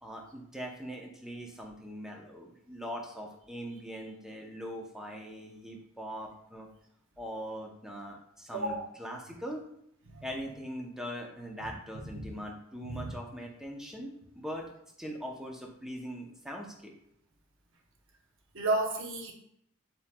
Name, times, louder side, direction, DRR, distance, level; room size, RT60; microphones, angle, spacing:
voice 1, 0.0-6.7 7.2-9.7 10.2-14.6 15.0-16.9, equal, ahead, 0 dB, 0.6 m, -41 dB
voice 2, 18.5-19.3, right 2 dB, 60° right, 2 dB, 0.8 m, -31 dB
7.2 x 2.9 x 2.2 m, 0.72 s
head